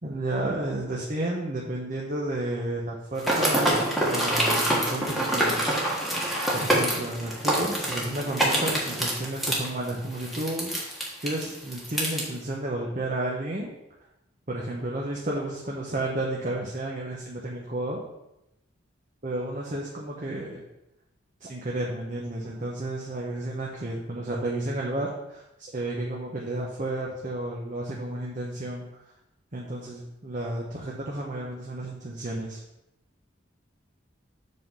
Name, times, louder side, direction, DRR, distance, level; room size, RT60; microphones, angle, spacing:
voice 1, 0.0-6.0 6.5-13.7 14.5-18.0 19.2-20.6 21.4-28.9 29.5-32.6, right 1 dB, 40° right, -3 dB, 1.0 m, -32 dB
sound 1, 3.2-12.2, right 1 dB, ahead, 1.4 m, -26 dB
7.4 x 3.9 x 5.4 m, 0.88 s
head